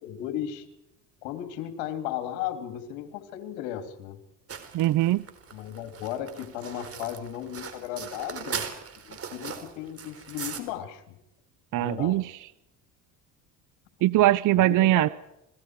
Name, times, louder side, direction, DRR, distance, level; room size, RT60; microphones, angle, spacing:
voice 1, 0.0-0.7 1.2-4.2 5.5-8.6 9.0-11.2 11.7-12.2 14.5-15.1, left 11 dB, 85° left, 7 dB, 3.6 m, -35 dB
sound 1, 4.5-10.6, right 6 dB, 40° right, 4.6 m, -39 dB
voice 2, 4.7-5.3 11.7-12.5 14.0-15.1, right 15 dB, 55° right, 17 dB, 0.7 m, -22 dB
29.5 x 21.5 x 4.9 m, 0.85 s
supercardioid pair, 90°, 38 cm